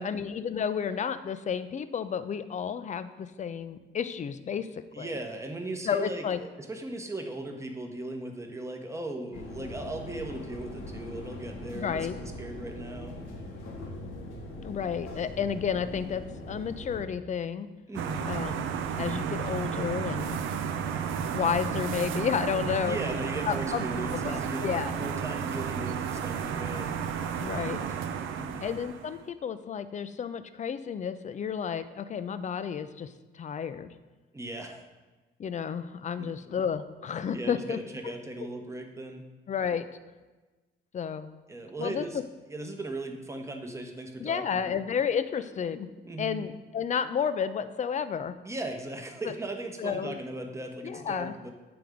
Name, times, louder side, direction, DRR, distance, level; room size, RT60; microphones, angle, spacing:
voice 1, 0.0-5.2 5.8-6.4 11.7-12.2 14.6-17.7 18.2-18.6 19.0-20.4 21.3-23.0 23.5-25.0 27.4-27.8 28.6-33.9 35.4-37.8 39.5-39.9 40.9-41.3 41.8-42.2 44.2-45.9 46.2-48.4 49.8-50.2 50.8-51.4, left 7 dB, 40° left, 12 dB, 0.4 m, -31 dB
voice 2, 4.9-13.2 17.9-18.3 22.8-26.9 28.4-28.7 34.3-34.8 36.2-36.3 37.3-39.3 41.5-42.2 42.5-44.8 46.0-46.4 48.4-51.5, right 2 dB, 15° right, 4 dB, 0.9 m, -38 dB
sound 1, 9.3-17.0, left 1 dB, 85° left, 1.1 m, -41 dB
sound 2, 17.9-29.2, right 7 dB, 85° right, 0.5 m, -32 dB
7.8 x 3.5 x 5.0 m, 1.2 s
cardioid pair, 90°, 20 cm